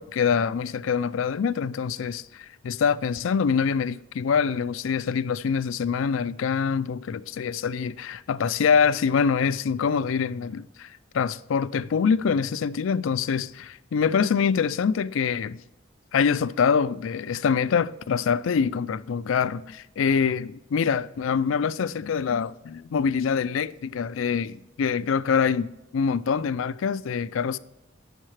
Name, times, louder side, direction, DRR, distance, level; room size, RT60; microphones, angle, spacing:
voice 1, 0.0-15.6 16.1-27.6, left 6 dB, 80° left, 0.4 m, -25 dB
8.8 x 6.5 x 3.1 m
head